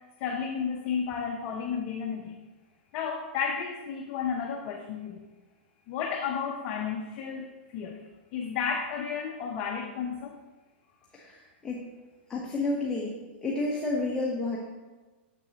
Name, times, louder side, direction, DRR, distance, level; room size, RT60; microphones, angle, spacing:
voice 1, 0.0-2.4 2.9-5.3 5.9-10.4, left 6 dB, 40° left, 2 dB, 0.6 m, -33 dB
voice 2, 11.1-11.8 12.3-13.1 13.4-14.6, left 2 dB, 10° left, -4 dB, 0.9 m, -30 dB
6.8 x 6.0 x 2.8 m, 1.2 s
hypercardioid pair, 125°, 6 cm